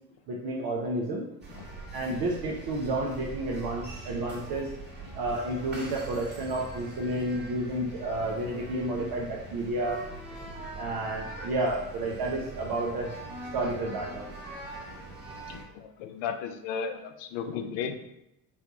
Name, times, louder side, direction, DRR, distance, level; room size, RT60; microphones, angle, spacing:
voice 1, 0.3-1.3 1.9-4.7 5.1-10.0 10.8-13.1 13.5-14.3, right 1 dB, 50° right, -2 dB, 0.7 m, -31 dB
sound 1, 1.4-15.6, right 2 dB, 20° right, 1.4 m, -42 dB
voice 2, 10.5-10.8 15.0-15.1 15.4-18.1, left 6 dB, 70° left, 6 dB, 0.6 m, -36 dB
4.3 x 2.3 x 2.9 m, 0.83 s
hypercardioid pair, 65°, 48 cm